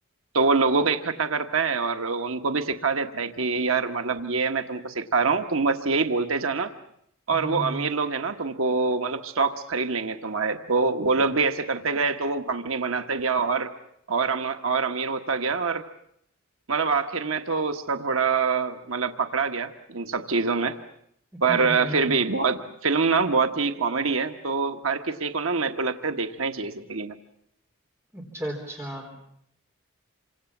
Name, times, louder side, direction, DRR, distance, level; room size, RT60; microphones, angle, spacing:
voice 1, 0.3-6.7 7.3-13.7 14.1-15.8 16.7-20.8 21.4-27.1, right 4 dB, 80° right, 7 dB, 1.4 m, -25 dB
voice 2, 7.3-7.9 21.5-22.1 28.1-29.2, right 1 dB, 15° right, 0 dB, 4.0 m, -34 dB
28.0 x 26.0 x 7.3 m, 0.71 s
head